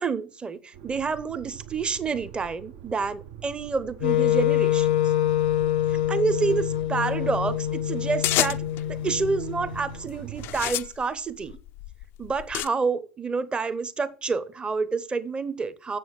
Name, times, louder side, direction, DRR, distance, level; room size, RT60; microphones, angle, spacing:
voice 1, 0.0-5.1 5.9-8.6 8.9-11.6 12.2-16.0, right 4 dB, 20° right, 0.8 m, -28 dB
sound 1, 0.7-10.8, right 10 dB, 60° right, 0.7 m, -44 dB
Wind instrument woodwind instrument, 4.0-10.1, left 12 dB, 85° left, 0.7 m, -25 dB
sound 2, 8.2-8.9 9.6-10.0 10.4-12.7, left 15 dB, 50° left, 0.4 m, -29 dB
6.9 x 6.2 x 4.7 m
hypercardioid pair, 90°, 5 cm